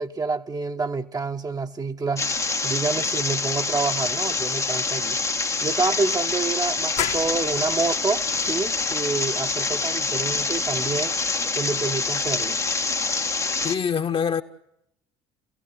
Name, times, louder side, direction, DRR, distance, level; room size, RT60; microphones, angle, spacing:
voice 1, 0.0-5.2 5.6-11.1 11.5-12.6, right 3 dB, 25° right, 1.1 m, -28 dB
sound 1, 2.2-13.8, left 3 dB, 20° left, 0.9 m, -26 dB
sound 2, 7.0-12.4, left 11 dB, 65° left, 1.6 m, -37 dB
voice 2, 13.6-14.4, left 7 dB, 40° left, 1.3 m, -24 dB
28.5 x 17.5 x 8.1 m
figure-of-eight pair, 55°, 15 cm